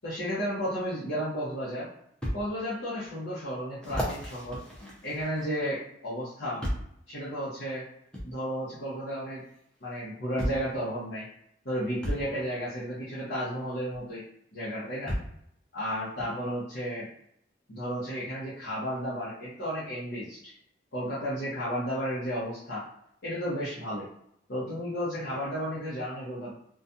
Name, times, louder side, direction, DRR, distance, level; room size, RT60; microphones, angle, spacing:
voice 1, 0.0-1.9 2.3-4.6 5.0-6.6 7.1-7.8 8.2-9.4 9.8-11.2 11.6-14.2 14.5-15.1 15.7-17.1 17.7-20.5 20.9-22.8 23.2-24.1 24.5-26.5, equal, 65° left, -9 dB, 0.8 m, -33 dB
sound 1, 2.2-2.4 3.0-3.1 3.8-5.7 6.6-7.0 8.1-8.3 9.6-9.7 10.4-10.7 12.0-12.3 13.9-14.0 15.1-15.4 16.2-16.3, equal, 5° left, 0.6 m, -33 dB
2.4 x 2.2 x 2.6 m, 0.72 s
head